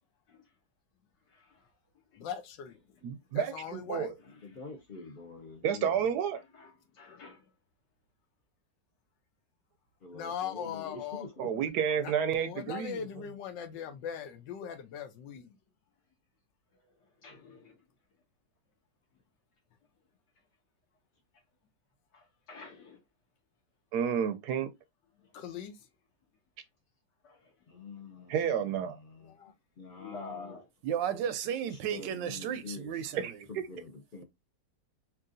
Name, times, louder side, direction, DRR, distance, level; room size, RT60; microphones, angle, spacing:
voice 1, 1.3-2.2 2.8-3.3 4.2-5.1 6.3-7.6 16.7-17.9 19.1-19.2 20.3-20.5 22.1-23.0 25.1-25.4 27.2-28.3 29.9-30.7, left 3 dB, 70° left, 2.5 m, -52 dB
voice 2, 2.2-2.8 3.3-4.2 10.1-11.2 12.0-15.5 25.3-25.8 29.2-29.5, left 8 dB, 85° left, 1.4 m, -40 dB
voice 3, 3.0-4.1 5.6-6.4 11.4-13.0 23.9-24.7 28.3-29.0 33.2-33.7, right 8 dB, 75° right, 1.0 m, -30 dB
voice 4, 4.2-6.0 10.0-11.7 27.7-29.4 29.8-30.5 31.7-33.2 33.5-34.2, left 3 dB, 45° left, 0.7 m, -46 dB
voice 5, 30.8-33.4, right 9 dB, 90° right, 1.3 m, -34 dB
4.6 x 3.0 x 2.5 m
omnidirectional pair, 1.9 m